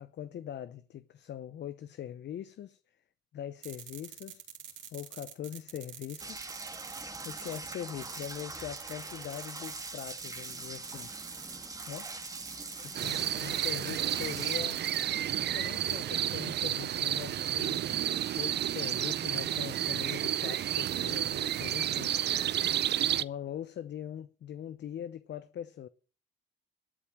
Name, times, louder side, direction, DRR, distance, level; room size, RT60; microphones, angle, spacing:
voice 1, 0.0-2.8 3.3-4.4 4.9-6.5 7.2-11.1 11.9-12.1 13.0-14.8 15.4-17.8 18.3-22.1 23.0-25.9, left 10 dB, 65° left, 0.8 m, -42 dB
sound 1, 3.6-15.0, right 8 dB, 75° right, 4.0 m, -47 dB
sound 2, 6.2-14.6, right 2 dB, 15° right, 1.5 m, -43 dB
sound 3, 12.9-23.2, right 11 dB, 60° right, 0.6 m, -31 dB
12.5 x 8.6 x 7.3 m
cardioid pair, 90°, 20 cm